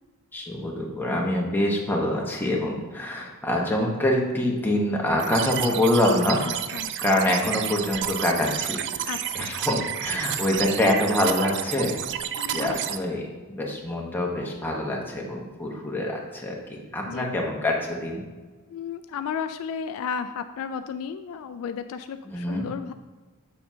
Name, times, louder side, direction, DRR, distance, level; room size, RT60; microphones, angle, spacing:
voice 1, 0.3-6.4 6.7-9.1 9.3-12.0 12.5-18.2 22.2-22.7, left 1 dB, 10° left, -2 dB, 1.0 m, -25 dB
sound 1, 5.2-13.0, right 10 dB, 55° right, 0.3 m, -31 dB
voice 2, 6.4-6.9 9.1-9.5 12.4-12.8 17.1-17.3 18.7-22.9, left 7 dB, 65° left, 9 dB, 0.3 m, -33 dB
7.3 x 6.8 x 2.7 m, 1.3 s
head